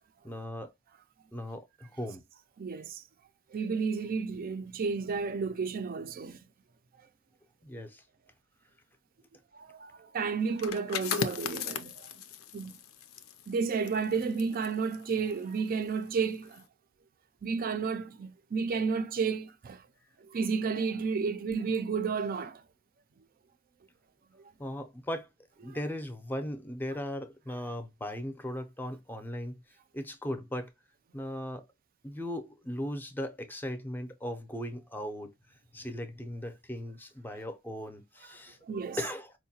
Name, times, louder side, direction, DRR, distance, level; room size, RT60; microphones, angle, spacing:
voice 1, 0.2-0.7 1.3-2.3 7.6-8.0 24.6-25.3 25.6-29.6 29.9-30.7 31.1-31.6 32.0-35.3 35.7-38.6 39.0-39.3, left 1 dB, 10° left, 0.5 m, -38 dB
voice 2, 2.6-3.0 3.5-6.4 9.5-12.1 12.5-12.8 13.5-16.6 17.4-19.8 20.3-22.6 25.7-25.8 38.6-39.0, right 5 dB, 45° right, 0.4 m, -32 dB
sound 1, 10.5-16.0 16.3-16.6, left 7 dB, 90° left, 0.5 m, -38 dB
4.6 x 2.2 x 2.7 m
head